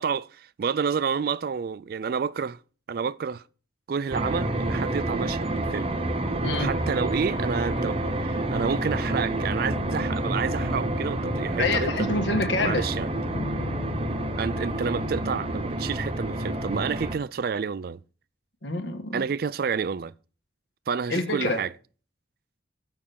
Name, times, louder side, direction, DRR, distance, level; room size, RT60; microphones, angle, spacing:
voice 1, 0.0-2.6 2.9-3.4 3.9-5.9 6.6-12.1 12.6-13.1 14.4-18.0 19.1-20.1 20.9-21.7, right 6 dB, 50° right, 0.3 m, -29 dB
sound 1, 4.1-17.2, right 1 dB, 30° right, 0.9 m, -29 dB
sound 2, 9.7-16.7, left 2 dB, 50° left, 0.7 m, -38 dB
voice 2, 11.6-12.9 18.6-19.2 21.1-21.6, left 2 dB, 70° left, 1.5 m, -26 dB
7.4 x 5.9 x 6.8 m
head